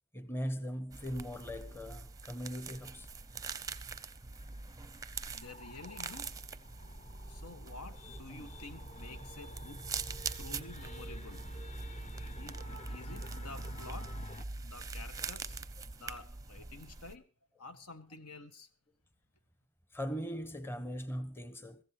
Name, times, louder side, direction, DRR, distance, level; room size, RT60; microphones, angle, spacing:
voice 1, 0.1-3.1 8.3-8.5 10.5-10.6 19.9-21.8, equal, 10° left, 1.0 m, -40 dB
sound 1, 0.9-17.2, right 4 dB, 15° right, 0.6 m, -43 dB
sound 2, 2.9-14.5, left 1 dB, 30° left, 0.8 m, -52 dB
voice 2, 5.3-6.3 7.3-9.9 10.4-11.5 12.3-17.2 17.6-18.7, left 3 dB, 80° left, 1.6 m, -50 dB
23.0 x 15.0 x 3.1 m
head